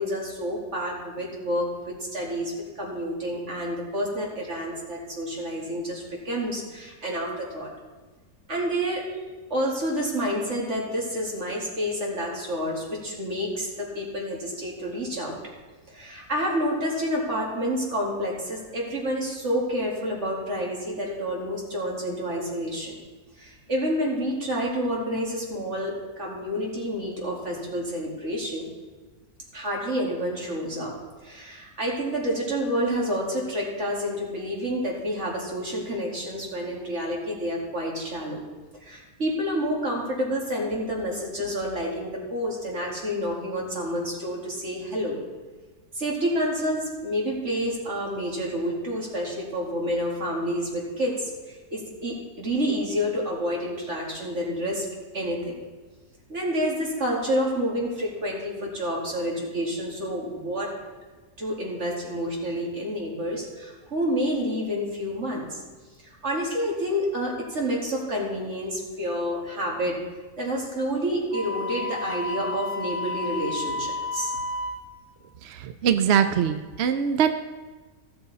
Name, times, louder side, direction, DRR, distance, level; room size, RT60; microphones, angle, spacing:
voice 1, 0.0-7.7 8.5-9.1 9.5-15.4 15.9-23.0 23.4-28.7 29.5-30.9 31.2-38.4 38.8-45.2 45.9-54.8 55.1-55.5 56.3-60.7 61.4-65.6 66.0-70.0 70.4-74.3, equal, 50° right, -3 dB, 2.7 m, -29 dB
Wind instrument woodwind instrument, 71.3-74.9, left 3 dB, 20° left, 0.3 m, -31 dB
voice 2, 75.4-77.3, right 8 dB, 65° right, 9 dB, 0.6 m, -23 dB
16.0 x 6.9 x 4.2 m, 1.3 s
omnidirectional pair, 1.6 m